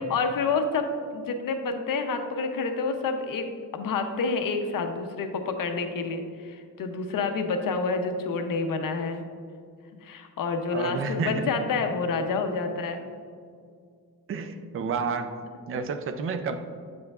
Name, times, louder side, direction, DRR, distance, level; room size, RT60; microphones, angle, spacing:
voice 1, 0.0-3.5 3.7-9.3 10.0-13.1, left 4 dB, 65° left, 6 dB, 0.6 m, -28 dB
voice 2, 10.7-11.5 14.3-15.3 15.7-16.6, right 5 dB, 40° right, 8 dB, 0.4 m, -30 dB
7.8 x 7.6 x 2.3 m, 2.2 s
wide cardioid pair, 180°, 36 cm